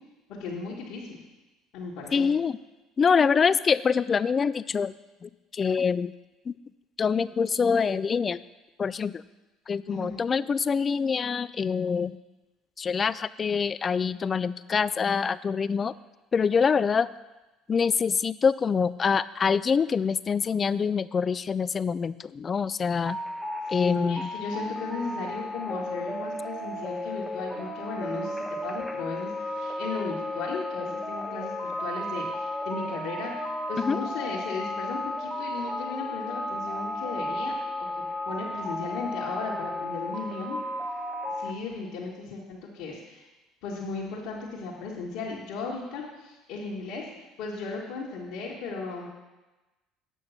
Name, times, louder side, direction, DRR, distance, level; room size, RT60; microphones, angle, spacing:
voice 1, 0.3-1.2 1.7-2.3 9.9-10.2 23.7-40.6 41.4-43.2 43.6-47.1 47.4-49.1, left 4 dB, 70° left, -6 dB, 1.7 m, -36 dB
voice 2, 2.1-2.6 3.0-4.9 5.2-6.1 6.5-6.6 7.0-8.4 8.8-9.2 9.7-12.1 12.8-15.9 16.3-17.1 17.7-23.2 23.7-24.3 33.8-34.0, left 6 dB, 35° left, 17 dB, 0.3 m, -25 dB
sound 1, 23.0-41.5, left 1 dB, 5° right, 1.1 m, -34 dB
8.5 x 6.2 x 5.8 m, 1.1 s
supercardioid pair, 80°, 0 cm